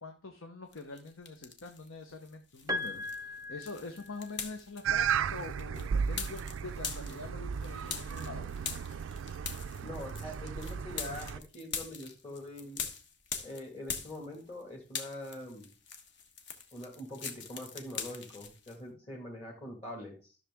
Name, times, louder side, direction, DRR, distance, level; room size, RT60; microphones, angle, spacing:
voice 1, 0.0-8.5, left 3 dB, 75° left, 5 dB, 1.0 m, -45 dB
sound 1, 0.7-1.9 2.2-14.6 14.9-18.8, left 6 dB, 55° left, 1.4 m, -42 dB
Piano, 2.7-4.7 6.0-6.1, left 2 dB, 15° right, 0.5 m, -38 dB
sound 2, 4.8-11.4, right 7 dB, 70° right, 0.4 m, -35 dB
voice 2, 9.8-12.8 13.4-15.7 16.7-20.4, left 1 dB, 30° left, -2 dB, 2.0 m, -44 dB
13.0 x 6.5 x 3.6 m, 0.35 s
head